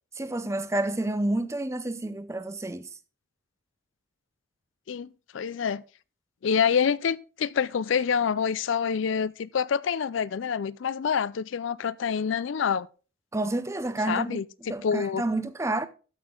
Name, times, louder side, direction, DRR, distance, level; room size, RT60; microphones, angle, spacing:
voice 1, 0.2-2.9 13.3-14.4 14.7-15.9, right 2 dB, 15° right, 0.5 m, -29 dB
voice 2, 4.9-5.8 6.4-12.9 14.1-15.2, left 7 dB, 75° left, 0.4 m, -27 dB
12.5 x 6.1 x 3.7 m
head